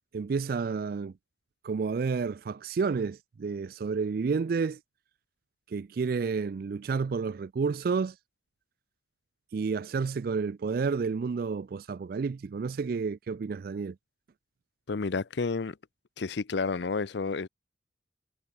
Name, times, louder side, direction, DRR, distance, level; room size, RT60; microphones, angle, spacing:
voice 1, 0.1-1.1 1.6-4.8 5.7-8.2 9.5-14.0, right 5 dB, 50° right, 0.3 m, -30 dB
voice 2, 14.9-15.8 16.2-17.5, left 4 dB, 65° left, 0.6 m, -30 dB
head